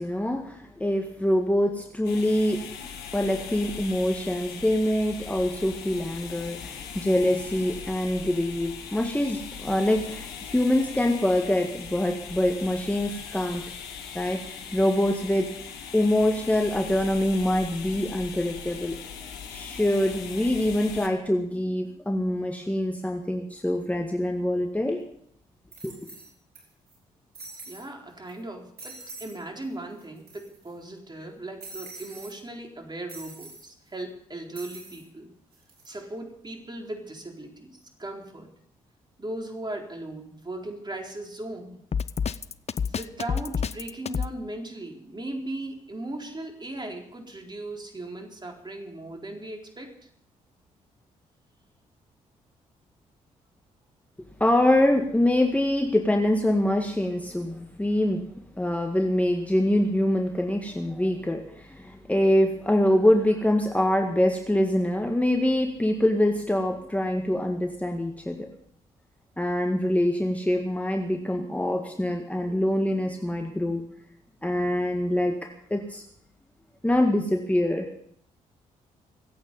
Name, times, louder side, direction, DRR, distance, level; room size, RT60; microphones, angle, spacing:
voice 1, 0.0-2.6 3.1-13.6 14.1-15.5 15.9-19.0 19.5-25.0 25.8-25.9 54.4-58.3 58.6-68.5 69.4-73.8 74.4-75.3 75.7-76.0 76.8-77.9, left 1 dB, 10° left, 3 dB, 1.9 m, -24 dB
sound 1, 2.0-21.1, left 7 dB, 75° left, 1.7 m, -40 dB
sound 2, 24.9-25.0 25.7-26.6 26.9-27.0 27.3-27.9 28.3-28.4 28.8-29.4 29.6-29.7 30.0-30.7 31.6-32.3 33.1-33.6 34.5-35.0 35.5-35.9, right 2 dB, 65° right, 4.5 m, -44 dB
voice 2, 27.7-35.3 35.9-38.5 39.2-41.8 42.8-50.1, right 1 dB, 25° right, 2 dB, 4.1 m, -38 dB
Drum kit, 41.9-44.3, left 6 dB, 40° left, 0.7 m, -28 dB
25.0 x 8.7 x 5.5 m, 0.68 s
hypercardioid pair, 40°, 17 cm